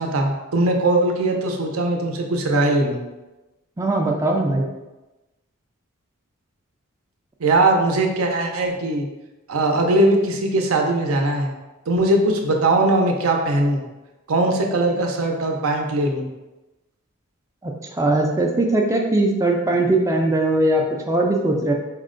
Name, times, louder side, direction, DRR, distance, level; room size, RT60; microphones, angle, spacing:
voice 1, 0.0-3.0 7.4-9.1 9.5-11.5 11.9-13.8 14.3-16.3, right 2 dB, 70° right, 2 dB, 0.6 m, -20 dB
voice 2, 3.8-4.6 17.6-21.7, right 2 dB, 15° right, 1 dB, 0.4 m, -20 dB
4.3 x 2.1 x 3.7 m, 1.1 s
head